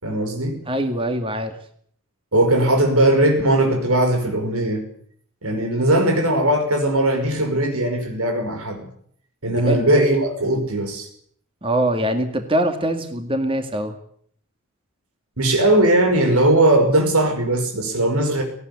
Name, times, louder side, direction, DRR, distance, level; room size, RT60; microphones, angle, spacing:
voice 1, 0.0-0.6 2.3-4.8 5.4-8.9 9.4-11.1 15.4-18.4, right 1 dB, 85° right, 4 dB, 5.5 m, -19 dB
voice 2, 0.7-1.5 9.7-9.8 11.6-14.0, right 1 dB, 25° right, 6 dB, 2.2 m, -23 dB
19.0 x 17.5 x 9.8 m, 0.63 s
head